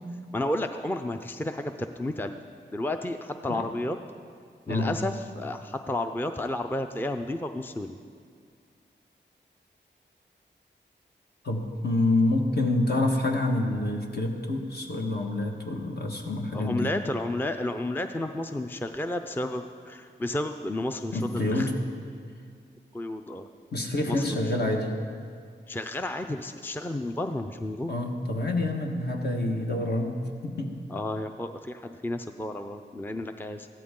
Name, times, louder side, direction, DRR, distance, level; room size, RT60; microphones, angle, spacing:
voice 1, 0.3-2.3 2.7-4.0 4.7-8.0 16.5-21.7 22.9-23.5 24.1-24.4 25.7-27.9 30.9-33.7, left 1 dB, 10° left, 7 dB, 0.5 m, -32 dB
voice 2, 11.4-16.9 21.1-21.7 23.7-24.9 27.9-30.8, left 2 dB, 60° left, 1 dB, 1.6 m, -27 dB
14.5 x 12.5 x 3.8 m, 2.1 s
cardioid pair, 55°, 19 cm